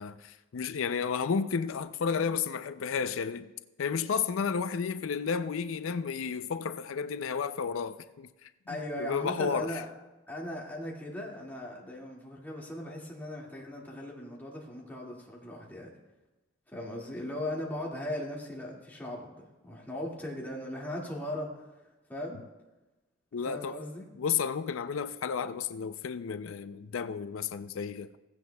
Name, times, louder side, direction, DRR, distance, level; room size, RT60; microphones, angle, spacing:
voice 1, 0.0-3.5 3.8-9.8 23.3-23.8 24.2-28.1, left 6 dB, 85° left, 0.4 m, -32 dB
voice 2, 8.7-9.9 10.3-15.9 16.7-21.6 22.1-22.4 23.4-24.1, left 1 dB, 10° left, 2.1 m, -38 dB
16.5 x 15.5 x 2.3 m
head